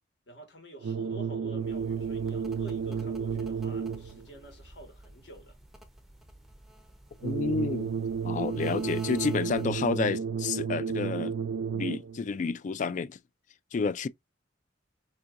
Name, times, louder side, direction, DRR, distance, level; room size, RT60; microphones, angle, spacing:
voice 1, 0.3-5.6, right 1 dB, 65° left, 1.5 m, -49 dB
sound 1, 0.8-4.3 7.2-12.3, right 6 dB, 70° right, 0.4 m, -32 dB
sound 2, 1.6-10.0, right 1 dB, ahead, 0.6 m, -52 dB
voice 2, 7.2-7.9 8.2-11.4 11.7-13.2 13.7-14.1, left 5 dB, 40° left, 0.3 m, -30 dB
4.4 x 2.7 x 2.4 m
head